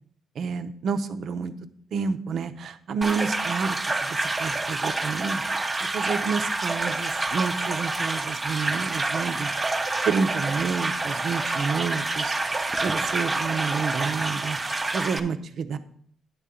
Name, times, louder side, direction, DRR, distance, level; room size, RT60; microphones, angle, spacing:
voice 1, 0.4-1.5 1.9-5.4 5.9-9.5 10.1-12.4 12.8-14.6 14.9-15.8, right 5 dB, 65° right, 9 dB, 0.7 m, -29 dB
sound 1, 3.0-15.2, right 2 dB, 20° right, 0.7 m, -28 dB
10.0 x 3.7 x 6.9 m, 0.62 s
cardioid pair, 90°, 0 cm